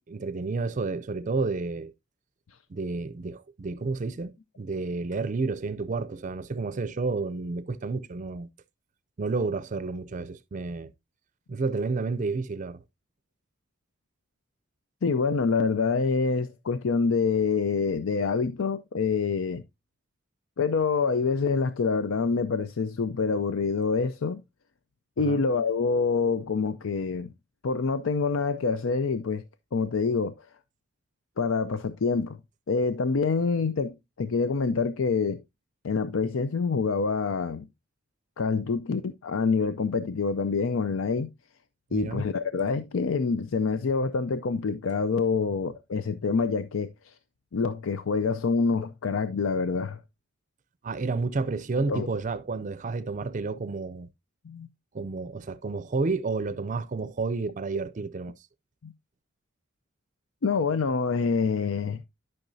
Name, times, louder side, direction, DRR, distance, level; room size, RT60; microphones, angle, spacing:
voice 1, 0.1-1.9 2.7-8.5 9.2-10.9 11.5-12.8 25.2-25.4 41.9-42.2 50.8-54.1 54.9-58.3, right 3 dB, 40° right, 0.4 m, -30 dB
voice 2, 15.0-19.6 20.6-24.4 25.2-27.3 27.6-29.4 29.7-30.3 31.4-32.4 32.7-35.4 35.8-37.7 38.4-41.3 41.9-47.1 47.5-50.0 51.9-52.1 54.4-54.7 58.8-58.9 60.4-62.0, left 4 dB, 90° left, 0.5 m, -26 dB
12.0 x 5.8 x 2.6 m
head